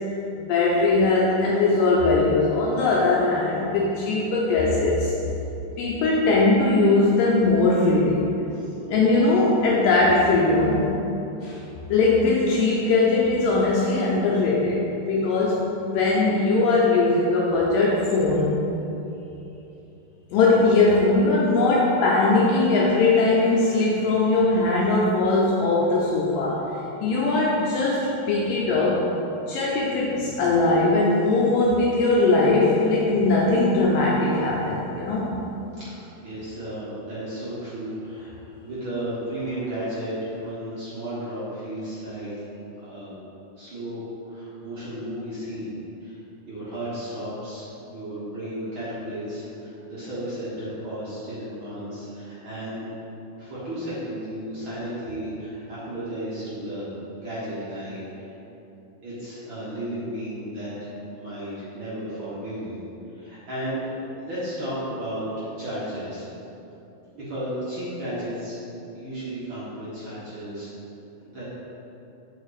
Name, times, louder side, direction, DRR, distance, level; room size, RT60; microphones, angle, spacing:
voice 1, 0.4-5.1 5.8-8.3 8.9-10.9 11.4-11.6 11.9-14.8 15.1-15.6 15.9-18.5 20.3-29.0 29.5-35.4, left 3 dB, 75° left, -4 dB, 2.1 m, -20 dB
voice 2, 35.8-38.3 38.6-42.3 42.8-43.1 43.6-45.7 46.0-46.2 46.5-52.9 53.3-56.9 57.2-58.3 59.0-62.8 63.1-63.9 64.2-66.2 67.1-68.6 69.0-70.7 71.3-71.4, right 1 dB, 55° right, -10 dB, 1.3 m, -33 dB
6.4 x 6.3 x 4.0 m, 2.9 s
omnidirectional pair, 4.5 m